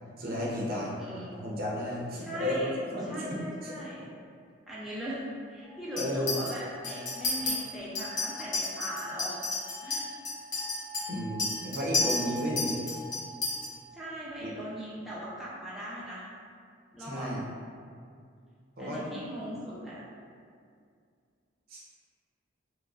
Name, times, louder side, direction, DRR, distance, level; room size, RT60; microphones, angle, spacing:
voice 1, 0.2-0.9 1.3-3.3 3.6-3.7 5.9-6.3 11.1-12.7 14.4-14.5 17.0-17.4 18.8-19.2 21.7-21.8, equal, 50° right, -4 dB, 0.6 m, -33 dB
voice 2, 1.0-1.3 2.2-2.8 3.0-4.1 4.7-5.2 5.5-9.4 9.8-10.1 13.9-16.3 16.9-17.3 18.8-20.0, equal, ahead, -9 dB, 0.4 m, -39 dB
Chink clink, 6.0-6.5 6.8-7.5 8.0-13.7, left 3 dB, 60° left, 1.1 m, -32 dB
4.7 x 2.1 x 2.3 m, 2.3 s
head